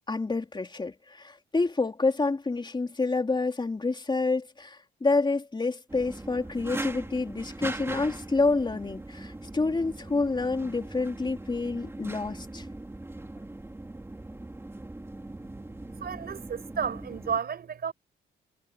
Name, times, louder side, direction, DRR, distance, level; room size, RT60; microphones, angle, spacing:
voice 1, 0.1-12.7, left 3 dB, 25° left, 3.7 m, -28 dB
sound 1, 5.9-17.4, right 2 dB, 10° right, 2.8 m, -40 dB
voice 2, 15.8-17.9, right 7 dB, 50° right, 5.5 m, -32 dB
cardioid pair, 90°, 20 cm